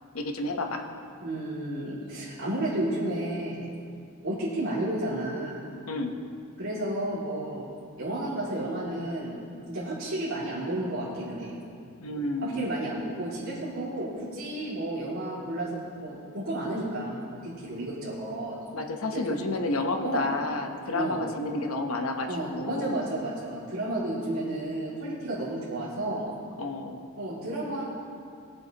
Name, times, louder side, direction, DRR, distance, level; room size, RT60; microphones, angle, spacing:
voice 1, 0.1-0.8 5.9-6.2 12.0-12.8 18.7-23.1 26.6-27.1, left 2 dB, 80° left, 4 dB, 0.9 m, -30 dB
voice 2, 1.2-3.7 4.2-5.6 6.6-7.7 8.0-11.5 12.4-18.6 20.0-20.2 20.9-21.2 22.3-26.3 27.2-27.8, right 1 dB, 80° right, -10 dB, 2.5 m, -32 dB
18.0 x 7.7 x 2.9 m, 2.4 s
head